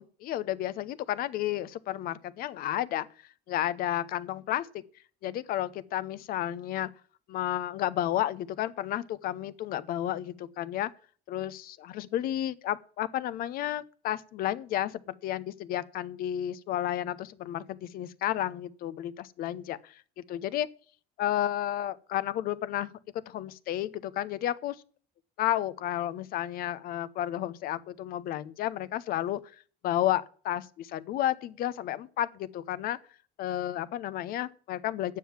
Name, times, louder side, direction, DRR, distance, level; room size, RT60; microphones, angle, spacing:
voice 1, 0.0-3.1 3.5-4.8 5.2-6.9 7.3-10.9 11.3-19.9 20.3-20.7 21.2-24.8 25.4-29.4 29.8-33.0 33.4-35.2, left 12 dB, 65° left, 0.8 m, -32 dB
9.2 x 7.5 x 7.2 m
cardioid pair, 120°, 17 cm